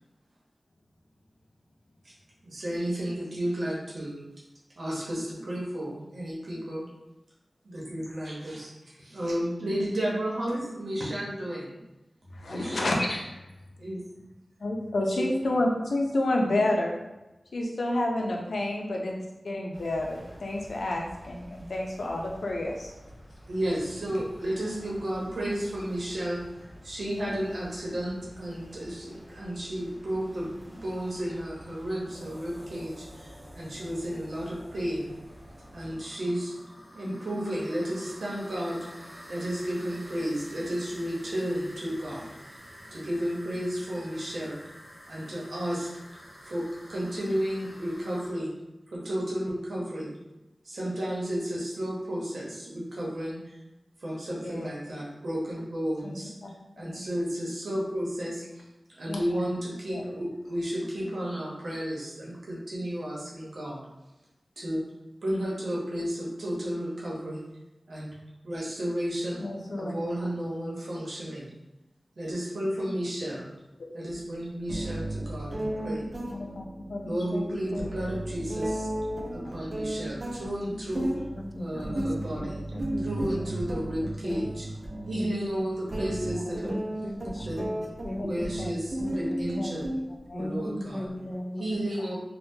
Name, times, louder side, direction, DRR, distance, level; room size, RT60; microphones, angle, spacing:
voice 1, 2.4-4.2 4.8-6.8 7.6-8.7 9.0-11.8 12.5-12.8 13.8-14.0 15.2-15.3 23.5-26.4 26.8-35.1 35.7-36.6 36.9-38.9 39.3-42.3 42.9-44.6 45.1-45.9 46.4-46.6 46.9-48.5 48.9-50.1 50.6-53.4 54.0-56.3 56.8-58.4 58.9-63.8 64.6-64.8 65.2-67.4 67.9-68.1 68.4-69.4 69.8-71.5 72.2-73.5 73.9-76.1 77.0-78.9 79.3-81.1 81.6-82.6 83.0-84.6 85.1-86.8 87.4-87.8 88.1-89.9 90.3-91.1 91.6-92.1, equal, 85° right, -5 dB, 0.9 m, -32 dB
voice 2, 12.3-13.5 14.6-17.0 17.5-22.9 54.4-54.7 56.0-56.1 56.4-56.5 56.9-57.0 59.1-59.4 59.9-60.1 69.4-70.3 74.7-74.8 75.8-78.2 80.7-81.1 81.9-82.1 82.4-82.6 83.4-83.5 84.9-85.0 85.5-85.6 86.3-86.4 87.4-87.5 88.2-88.7 89.0-89.7 90.3-90.7 91.6-92.1, left 1 dB, 85° left, 0 dB, 0.5 m, -31 dB
sound 1, 19.7-36.0, equal, 10° right, 1.2 m, -50 dB
sound 2, 32.1-48.3, equal, 35° right, 1.2 m, -49 dB
sound 3, 74.1-74.2 74.7-90.6, right 1 dB, 50° right, 0.5 m, -34 dB
voice 3, 81.4-82.3 82.7-83.4 84.2-84.4 85.1-85.3 85.6-85.7 86.0-86.2 86.6-87.7 88.0-88.3 89.1-89.2 89.5-89.6 90.4-91.6, left 1 dB, 30° left, 4 dB, 0.4 m, -37 dB
3.6 x 2.2 x 2.7 m, 0.99 s
cardioid pair, 50°, 0 cm